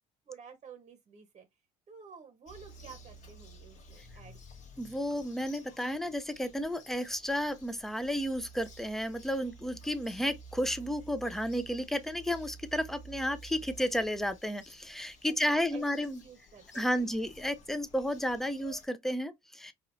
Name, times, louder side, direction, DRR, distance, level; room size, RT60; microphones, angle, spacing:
voice 1, 0.3-1.5 1.9-4.4 15.2-17.1, right 6 dB, 40° right, 0.9 m, -51 dB
Bird vocalization bird call bird song, 2.5-18.9, right 1 dB, 45° left, 1.1 m, -53 dB
voice 2, 4.8-16.2 16.7-19.7, equal, ahead, 0.5 m, -32 dB
4.7 x 2.8 x 2.5 m
cardioid pair, 115°, 17 cm